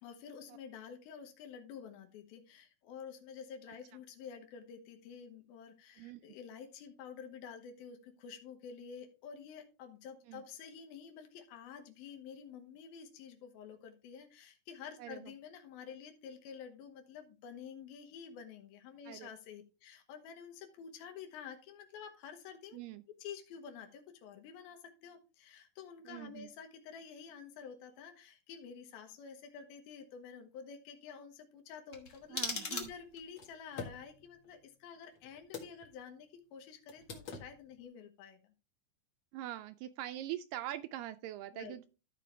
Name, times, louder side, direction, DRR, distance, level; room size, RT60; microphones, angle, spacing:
voice 1, 0.0-22.8 23.2-38.4 41.5-41.8, left 7 dB, 85° left, 3.0 m, -50 dB
voice 2, 15.0-15.3 19.1-19.3 22.7-23.0 26.1-26.5 32.3-32.9 39.3-41.9, right 13 dB, 80° right, 2.0 m, -43 dB
sound 1, 31.9-33.4, left 3 dB, 60° left, 0.7 m, -40 dB
sound 2, 32.2-36.0 36.3-36.4 36.9-37.8, left 5 dB, 40° left, 1.9 m, -49 dB
14.0 x 4.9 x 3.4 m
omnidirectional pair, 4.2 m